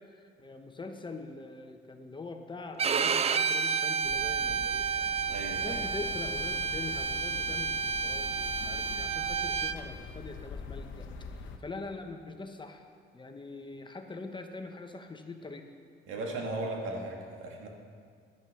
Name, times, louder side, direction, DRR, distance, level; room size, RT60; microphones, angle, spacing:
voice 1, 0.0-4.9 5.6-11.1 11.4-12.9 13.1-15.7, left 3 dB, 25° left, 5 dB, 1.1 m, -43 dB
Bowed string instrument, 2.8-9.8, right 5 dB, 30° right, 0.4 m, -30 dB
sound 1, 4.0-11.6, left 4 dB, 80° left, 1.1 m, -44 dB
voice 2, 5.3-5.8 16.1-17.7, right 2 dB, 90° right, 1 dB, 1.9 m, -36 dB
11.0 x 9.8 x 5.8 m, 2.1 s
cardioid pair, 90°, 20 cm